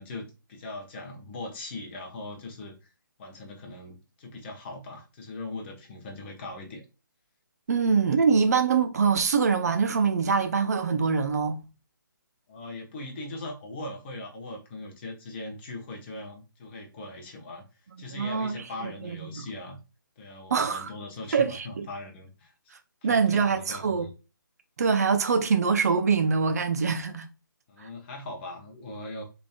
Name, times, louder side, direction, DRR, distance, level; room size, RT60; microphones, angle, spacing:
voice 1, 0.0-2.8 3.2-6.8 12.5-17.6 18.0-19.8 20.2-22.5 23.0-24.1 27.7-29.2, left 2 dB, 30° left, 1.1 m, -40 dB
voice 2, 7.7-11.6 18.1-19.5 20.5-20.9 21.3-21.9 23.0-24.1 24.8-27.3, right 5 dB, 50° right, 0.6 m, -24 dB
3.9 x 3.5 x 2.2 m
figure-of-eight pair, 150°, 11 cm